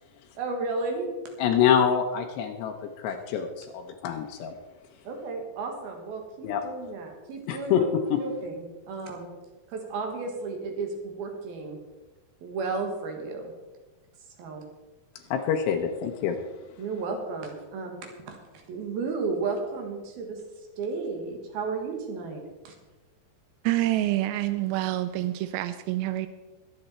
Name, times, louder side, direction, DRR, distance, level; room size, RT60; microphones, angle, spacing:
voice 1, 0.4-1.1 5.0-7.9 8.2-9.3 9.7-11.8 12.4-13.5 14.4-14.6 16.8-18.4 18.7-20.4 20.8-22.7, right 4 dB, 70° right, 3.3 m, -33 dB
voice 2, 1.4-2.7 3.0-4.5 6.4-6.6 7.5-7.8 15.3-16.4, left 8 dB, 85° left, 3.0 m, -25 dB
voice 3, 23.6-26.3, right 15 dB, 85° right, 2.1 m, -27 dB
22.5 x 8.0 x 4.3 m
omnidirectional pair, 4.8 m